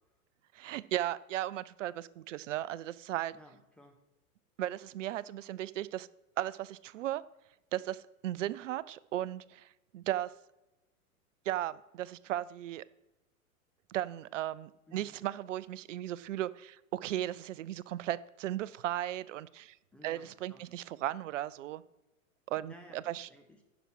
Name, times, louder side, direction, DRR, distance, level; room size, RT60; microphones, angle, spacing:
voice 1, 0.5-3.3 4.6-6.1 6.4-7.2 7.7-10.3 11.5-12.8 13.9-19.8 20.0-21.8 22.5-23.3, right 13 dB, 60° right, 19 dB, 0.5 m, -36 dB
voice 2, 3.3-4.0 14.9-15.2 19.9-20.7 22.6-23.6, equal, 5° left, 3 dB, 0.3 m, -56 dB
10.0 x 6.1 x 6.0 m, 0.98 s
figure-of-eight pair, 105°, 43 cm